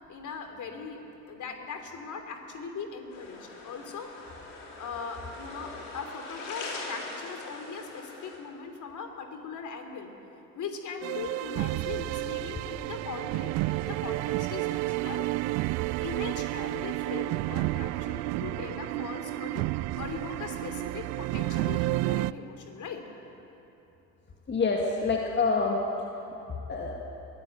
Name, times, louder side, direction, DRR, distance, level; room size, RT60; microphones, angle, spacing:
voice 1, 0.1-1.0 1.3-4.1 4.8-10.1 10.5-15.3 16.0-19.6 20.0-23.0, left 5 dB, 40° left, 5 dB, 3.1 m, -39 dB
sound 1, 3.1-8.4, left 3 dB, 60° left, 4.2 m, -42 dB
sound 2, 11.0-22.3, right 19 dB, 35° right, 0.4 m, -31 dB
voice 2, 24.5-26.2 26.7-27.1, left 4 dB, 25° left, 0 dB, 2.1 m, -28 dB
22.0 x 16.0 x 7.9 m, 3.0 s
figure-of-eight pair, 65°, 47 cm